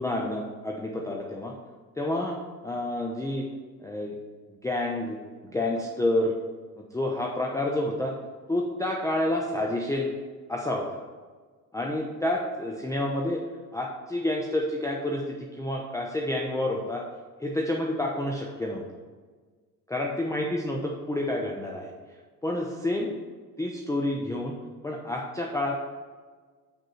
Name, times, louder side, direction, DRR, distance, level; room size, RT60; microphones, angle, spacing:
voice 1, 0.0-1.5 2.0-2.4 2.6-3.4 3.8-4.2 4.6-5.2 5.4-6.3 6.9-8.2 8.5-10.1 10.5-11.0 11.7-13.4 13.7-17.0 17.4-18.8 19.9-21.9 22.4-23.1 23.6-24.6 24.8-25.8, left 1 dB, 5° left, -1 dB, 0.8 m, -29 dB
6.3 x 6.3 x 4.2 m, 1.5 s
figure-of-eight pair, 60°, 45 cm